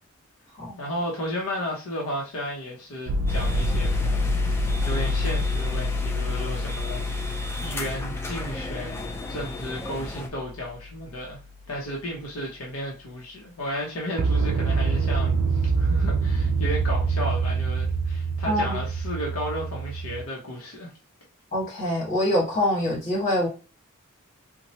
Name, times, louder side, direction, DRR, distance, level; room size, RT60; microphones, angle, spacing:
voice 1, 0.8-11.4 11.7-20.9, equal, 80° left, 0.7 m, -34 dB
sound 1, 3.1-10.9 14.2-20.2, right 2 dB, 80° right, 0.4 m, -26 dB
sound 2, 3.3-10.3, left 1 dB, 10° left, 0.3 m, -36 dB
voice 2, 18.5-18.8 21.5-23.5, left 1 dB, 35° left, 1.6 m, -24 dB
3.0 x 2.1 x 2.7 m
head